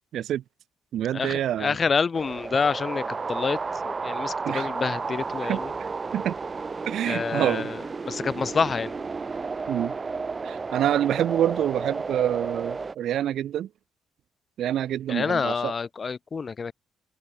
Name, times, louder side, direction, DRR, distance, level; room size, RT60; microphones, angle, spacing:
voice 1, 0.1-0.4 0.9-1.8 4.4-4.7 5.5-6.4 6.9-7.7 9.7-9.9 10.4-13.7 14.6-15.7, right 11 dB, 75° right, 6.1 m, -27 dB
voice 2, 1.1-3.6 3.8-5.7 7.0-7.8 8.1-8.9 15.1-16.7, left 5 dB, 40° left, 4.8 m, -27 dB
sound 1, 2.1-13.0, right 4 dB, 30° right, 4.6 m, -32 dB
cardioid pair, 90°, 0 cm